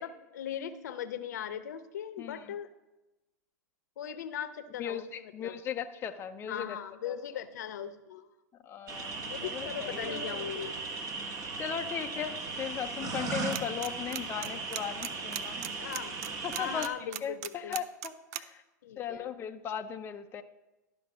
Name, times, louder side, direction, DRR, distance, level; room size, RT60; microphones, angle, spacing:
voice 1, 0.0-2.7 4.0-5.6 6.5-8.3 9.3-10.8 15.8-16.1 16.5-17.8 18.8-19.3, left 9 dB, 65° left, 12 dB, 0.8 m, -39 dB
voice 2, 2.2-2.5 4.8-6.8 7.1-7.2 8.6-10.2 11.6-15.6 16.4-18.6 19.0-20.4, left 8 dB, 25° left, 6 dB, 0.5 m, -37 dB
sound 1, 8.9-16.9, right 4 dB, 35° right, 1.5 m, -37 dB
sound 2, 13.5-13.9 14.1-18.4, right 13 dB, 55° right, 0.5 m, -36 dB
12.0 x 5.2 x 6.1 m, 1.0 s
hypercardioid pair, 100°, 10 cm